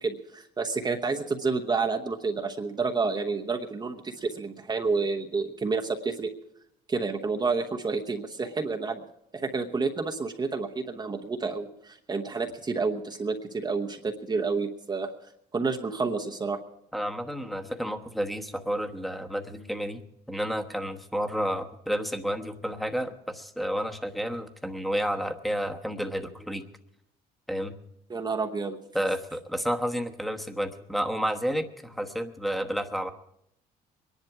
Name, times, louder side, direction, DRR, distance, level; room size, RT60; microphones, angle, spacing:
voice 1, 0.0-6.3 6.9-9.0 9.3-15.1 15.5-16.6 28.1-28.8, right 4 dB, 25° right, 2 dB, 1.0 m, -29 dB
voice 2, 16.9-20.0 20.3-26.6 27.5-27.8 28.9-33.1, equal, ahead, 7 dB, 1.1 m, -31 dB
22.5 x 10.5 x 4.8 m, 0.77 s
cardioid pair, 110°, 17 cm